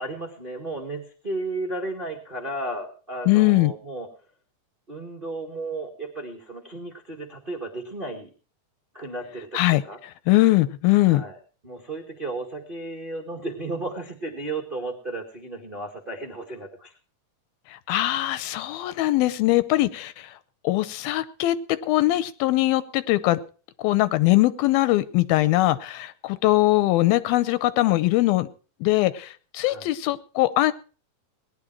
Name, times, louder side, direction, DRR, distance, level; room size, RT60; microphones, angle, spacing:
voice 1, 0.0-4.1 4.9-8.3 8.9-10.0 11.0-11.4 11.6-16.9 29.6-29.9, right 2 dB, 35° right, 1 dB, 0.8 m, -34 dB
voice 2, 3.3-3.7 9.5-9.8 10.3-11.2 17.9-20.3 20.6-21.6 21.9-23.4 23.8-28.5 28.8-30.7, left 17 dB, 90° left, 15 dB, 2.7 m, -21 dB
19.0 x 10.5 x 4.5 m, 0.37 s
omnidirectional pair, 4.1 m